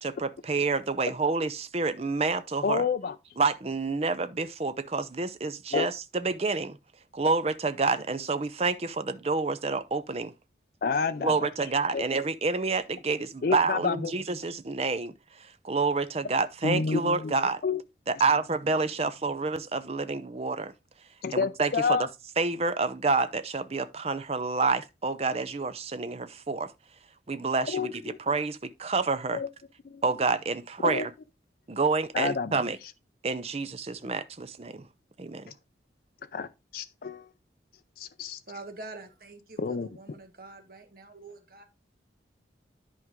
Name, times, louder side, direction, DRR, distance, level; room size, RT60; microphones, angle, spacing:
voice 1, 0.0-2.8 3.4-6.8 7.1-10.3 11.2-15.1 15.4-17.6 18.1-20.7 21.3-22.0 22.4-26.7 27.3-29.4 30.0-31.1 31.7-32.8 33.2-34.9 35.2-35.5, right 3 dB, 35° right, 0.5 m, -28 dB
voice 2, 2.6-3.1 5.7-5.9 10.8-11.5 11.9-12.1 13.4-14.1 16.6-17.3 17.6-17.8 21.2-22.1 27.7-28.2 29.3-29.5 29.9-30.0 30.8-31.1 32.1-32.6 36.3-37.3 38.0-38.4 39.6-39.9, left 5 dB, 55° left, 0.4 m, -29 dB
voice 3, 38.5-41.6, right 2 dB, 50° right, 1.5 m, -45 dB
11.0 x 4.7 x 3.6 m
head